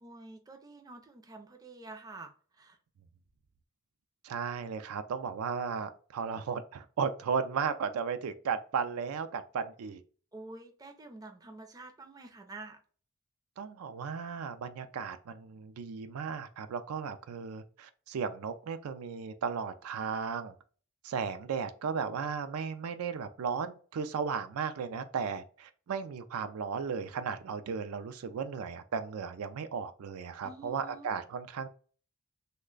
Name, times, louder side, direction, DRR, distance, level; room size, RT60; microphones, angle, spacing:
voice 1, 0.0-2.8 10.3-12.8 30.4-31.1, right 3 dB, 15° right, 0.4 m, -48 dB
voice 2, 4.2-10.0 13.6-20.5 21.0-31.7, right 6 dB, 90° right, 0.4 m, -35 dB
3.1 x 2.2 x 3.7 m
head